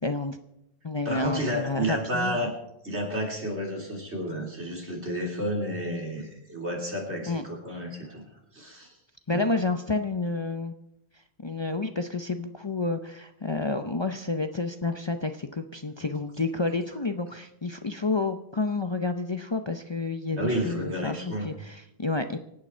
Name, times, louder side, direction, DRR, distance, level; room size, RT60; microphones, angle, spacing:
voice 1, 0.0-0.4 0.8-2.5 7.3-7.4 9.3-10.7 11.4-22.4, left 3 dB, 30° left, 7 dB, 0.6 m, -30 dB
voice 2, 1.0-2.5 2.8-8.2 8.5-8.9 9.3-9.4 20.4-21.5, equal, 80° right, 0 dB, 3.5 m, -31 dB
25.5 x 8.9 x 4.4 m, 0.83 s
omnidirectional pair, 1.1 m